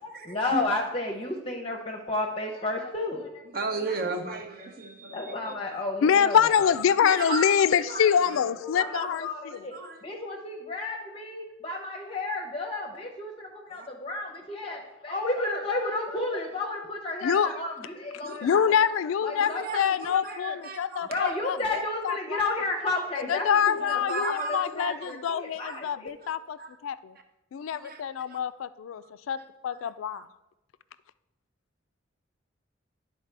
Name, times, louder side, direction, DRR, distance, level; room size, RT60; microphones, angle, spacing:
voice 1, 0.0-3.6 5.1-6.7 7.0-7.4 7.8-8.0 8.6-9.7 10.0-18.8 19.2-20.6 21.0-26.1, left 2 dB, 25° left, 0 dB, 0.6 m, -32 dB
voice 2, 3.5-5.5 7.0-8.1 9.0-9.1 9.5-10.0 13.7-13.9 18.2-18.4 19.4-20.4 20.6-21.1 23.8-24.7 25.7-25.8 26.2-26.3 26.6-26.7 27.7-28.0 28.3-28.4 29.0-29.1 29.4-29.8 30.1-30.2, right 3 dB, 45° right, 4 dB, 0.8 m, -35 dB
voice 3, 6.0-9.3 17.2-17.5 18.4-21.6 22.0-22.4 23.3-25.0 25.2-26.6 26.8-27.1 27.5-29.4 29.6-30.2, left 8 dB, 90° left, 16 dB, 0.3 m, -25 dB
11.0 x 4.3 x 3.3 m, 0.97 s
head